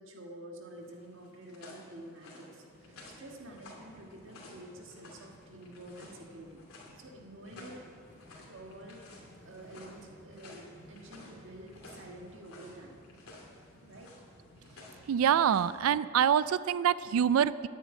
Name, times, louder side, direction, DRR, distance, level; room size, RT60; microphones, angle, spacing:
voice 1, 0.0-6.6 6.9-7.8 8.4-13.0 13.8-14.1, right 1 dB, 60° right, 1 dB, 1.7 m, -49 dB
sound 1, 0.7-15.8, left 2 dB, 85° left, 2.6 m, -54 dB
sound 2, 2.7-15.4, equal, 35° right, 3.6 m, -58 dB
voice 2, 15.1-17.7, right 8 dB, 80° right, 17 dB, 0.3 m, -26 dB
9.9 x 8.3 x 9.0 m, 2.4 s
head